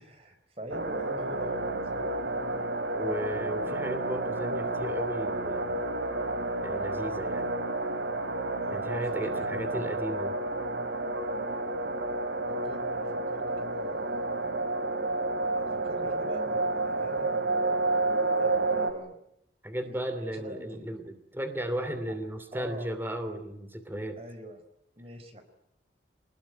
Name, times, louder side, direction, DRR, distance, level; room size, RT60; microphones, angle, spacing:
voice 1, 0.0-2.2 8.6-8.9 9.2-9.7 12.1-12.2 12.5-14.7 15.5-17.7 18.4-19.2 19.8-20.9 22.1-22.2 22.5-22.9 24.2-24.6 25.0-25.4, equal, 30° right, 7 dB, 4.6 m, -44 dB
sound 1, 0.7-18.9, right 2 dB, 70° right, 3.1 m, -30 dB
voice 2, 2.9-5.8 6.6-7.5 8.7-10.4 19.6-24.2, right 1 dB, 10° right, 8 dB, 2.8 m, -35 dB
26.5 x 20.5 x 9.2 m, 0.77 s
head